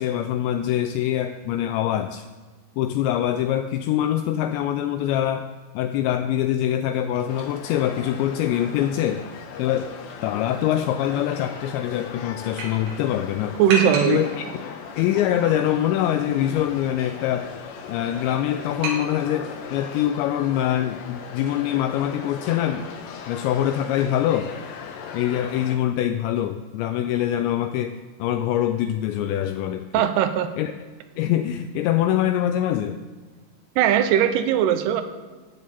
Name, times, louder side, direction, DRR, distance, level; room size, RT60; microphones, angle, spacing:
voice 1, 0.0-2.3 2.8-5.5 5.7-9.2 9.6-9.9 10.2-13.6 13.8-14.4 15.0-17.5 17.9-22.9 23.3-24.5 25.1-30.1 30.6-30.7 31.2-33.0, left 11 dB, 90° left, 8 dB, 2.5 m, -24 dB
sound 1, 6.7-19.7, right 2 dB, 65° right, 3.7 m, -37 dB
sound 2, 7.3-25.8, left 6 dB, 70° left, 3.1 m, -38 dB
voice 2, 13.6-14.2 29.9-30.5 33.8-35.0, right 10 dB, 85° right, 8 dB, 2.4 m, -19 dB
12.0 x 6.4 x 8.7 m, 1.4 s
omnidirectional pair, 5.7 m